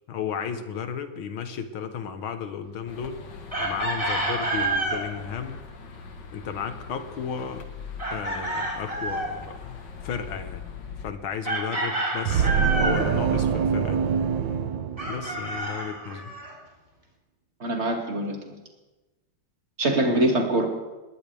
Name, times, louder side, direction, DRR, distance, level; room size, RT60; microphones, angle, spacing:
voice 1, 0.1-3.2 3.6-5.6 6.3-7.7 8.1-9.8 10.0-10.6 11.0-12.5 12.8-14.0 15.1-16.3, left 7 dB, 80° left, 8 dB, 2.0 m, -34 dB
sound 1, 2.9-11.1, left 5 dB, 60° left, 2.1 m, -42 dB
Chicken rooster, 3.5-5.0 8.0-9.3 11.4-13.1 15.0-16.5, right 2 dB, 15° right, 3.2 m, -28 dB
sound 2, 12.3-15.7, right 7 dB, 70° right, 1.4 m, -25 dB
voice 2, 17.6-18.6 19.8-20.6, right 1 dB, 30° right, 1 dB, 2.6 m, -24 dB
20.5 x 19.0 x 3.5 m, 1.2 s
omnidirectional pair, 2.2 m